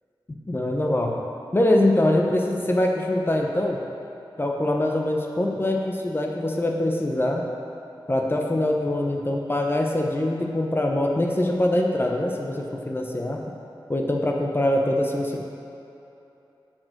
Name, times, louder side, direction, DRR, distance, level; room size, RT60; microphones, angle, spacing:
voice 1, 0.5-1.2 1.5-3.8 4.4-7.4 8.1-13.4 13.9-15.4, left 1 dB, 25° left, 0 dB, 0.7 m, -23 dB
7.2 x 5.1 x 6.5 m, 2.9 s
wide cardioid pair, 70°, 9 cm